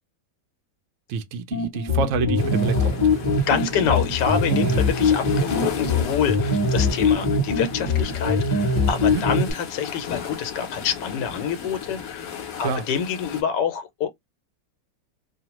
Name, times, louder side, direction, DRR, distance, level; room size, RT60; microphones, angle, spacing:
voice 1, 1.1-3.4 4.6-4.9 9.1-9.3 12.6-12.8, right 5 dB, 85° right, 0.6 m, -27 dB
sound 1, 1.5-9.5, left 3 dB, 15° left, 0.6 m, -22 dB
sound 2, 2.4-13.4, left 7 dB, 60° left, 1.0 m, -36 dB
voice 2, 3.5-14.1, left 7 dB, 80° left, 1.3 m, -26 dB
3.1 x 2.1 x 2.9 m
omnidirectional pair, 1.9 m